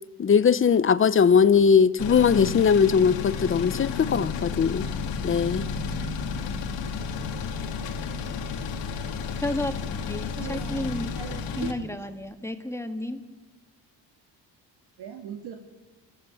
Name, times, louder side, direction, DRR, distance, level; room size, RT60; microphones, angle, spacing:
voice 1, 0.2-4.9 5.2-5.6, left 6 dB, 30° left, 0.8 m, -20 dB
sound 1, 2.0-11.7, left 5 dB, 85° left, 2.4 m, -32 dB
voice 2, 9.4-9.7 10.0-11.1 11.5-13.2, left 1 dB, 5° left, 1.7 m, -32 dB
voice 3, 10.4-10.8 11.1-11.9 15.0-15.5, right 9 dB, 75° right, 2.2 m, -38 dB
29.0 x 15.0 x 7.1 m
cardioid pair, 110°, 42 cm